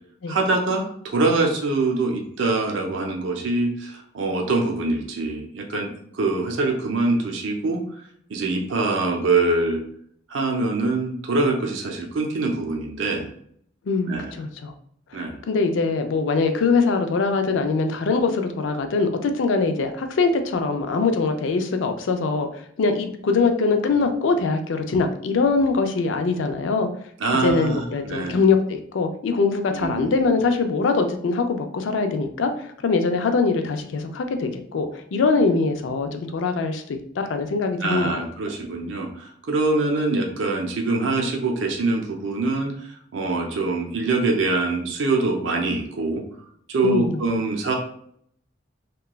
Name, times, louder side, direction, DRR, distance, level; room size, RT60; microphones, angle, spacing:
voice 1, 0.3-7.8 8.3-9.8 10.3-13.3 14.1-14.3 15.1-15.4 27.2-28.4 29.7-30.1 37.8-46.2 46.7-47.7, right 3 dB, 70° right, 1 dB, 0.5 m, -24 dB
voice 2, 13.9-14.7 15.1-26.9 27.4-38.2 46.8-47.2, left 4 dB, 70° left, 6 dB, 0.4 m, -23 dB
2.9 x 2.3 x 2.2 m, 0.64 s
head